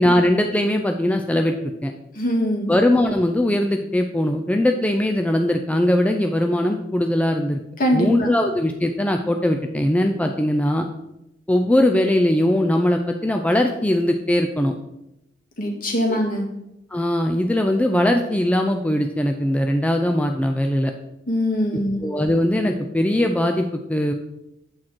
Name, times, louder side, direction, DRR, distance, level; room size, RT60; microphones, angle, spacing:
voice 1, 0.0-1.9 2.7-7.6 7.9-10.9 11.5-14.7 16.1-16.2 16.9-20.9 22.0-24.1, left 1 dB, 10° left, 4 dB, 0.5 m, -20 dB
voice 2, 2.2-2.7 7.8-8.3 15.6-16.5 21.3-22.0, equal, 50° left, 1 dB, 2.0 m, -22 dB
8.9 x 7.5 x 4.4 m, 0.88 s
head